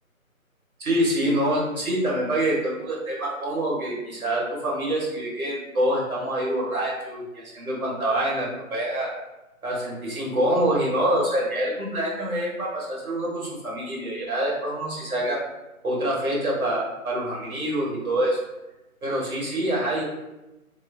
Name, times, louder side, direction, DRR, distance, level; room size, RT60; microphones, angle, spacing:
voice 1, 0.8-9.1 9.6-15.4 15.8-18.4 19.0-20.0, right 1 dB, 80° right, -4 dB, 1.2 m, -26 dB
2.9 x 2.3 x 2.3 m, 0.99 s
figure-of-eight pair, 180°, 42 cm